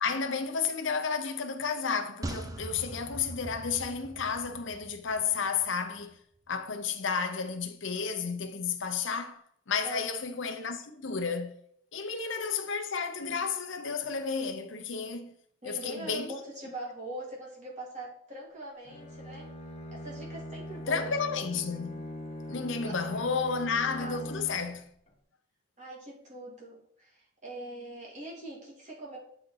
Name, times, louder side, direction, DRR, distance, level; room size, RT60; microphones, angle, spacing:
voice 1, 0.0-6.2 6.5-9.4 9.7-11.5 11.9-15.3 15.6-16.3 20.9-22.0 22.5-24.9, left 5 dB, 75° left, 0.7 m, -32 dB
sound 1, 2.2-5.7 6.0-6.1, right 1 dB, 20° right, 0.5 m, -42 dB
voice 2, 15.6-19.5 19.9-21.2 22.8-23.6 24.0-24.2 25.8-29.2, right 1 dB, 35° right, 2.2 m, -42 dB
Bowed string instrument, 18.8-24.8, left 1 dB, 30° left, 0.9 m, -41 dB
7.9 x 4.2 x 3.9 m
head